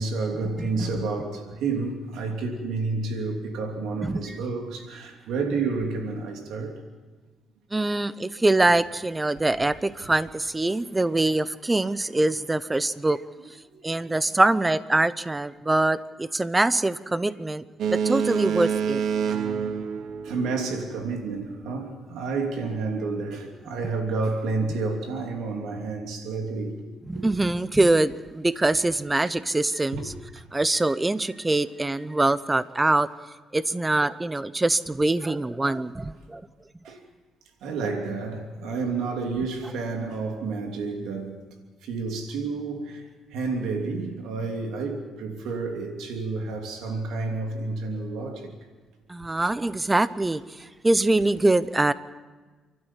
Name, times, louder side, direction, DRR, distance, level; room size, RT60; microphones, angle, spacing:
voice 1, 0.0-6.8 13.6-14.1 20.2-26.7 27.2-27.3 29.9-30.1 36.8-37.0 37.6-41.4 41.8-43.0 43.3-48.5, right 3 dB, 85° right, 3.0 m, -30 dB
voice 2, 0.6-0.9 4.0-4.4 7.7-13.2 13.8-19.0 27.1-30.1 30.5-33.1 33.5-36.4 49.1-51.9, right 2 dB, 15° right, 0.8 m, -24 dB
Boat Water vehicle, 17.8-20.9, right 7 dB, 70° right, 1.1 m, -27 dB
28.5 x 12.5 x 7.4 m
cardioid pair, 90°, 0 cm